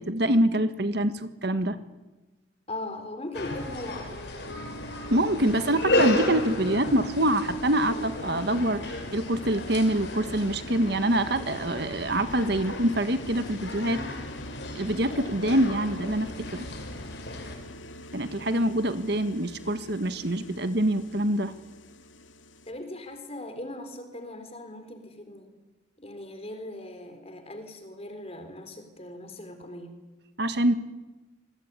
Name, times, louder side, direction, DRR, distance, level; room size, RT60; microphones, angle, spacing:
voice 1, 0.0-1.8 5.1-14.0 14.7-16.7 18.1-21.5 30.4-30.7, right 1 dB, 60° right, 11 dB, 1.6 m, -25 dB
voice 2, 2.7-4.3 18.4-18.8 22.7-25.5 26.0-30.0, left 1 dB, 30° left, 7 dB, 4.3 m, -39 dB
sound 1, 3.3-17.6, left 2 dB, 60° left, 6.0 m, -34 dB
sound 2, 4.5-22.7, left 1 dB, 85° left, 2.4 m, -43 dB
26.5 x 22.0 x 9.8 m, 1.1 s
head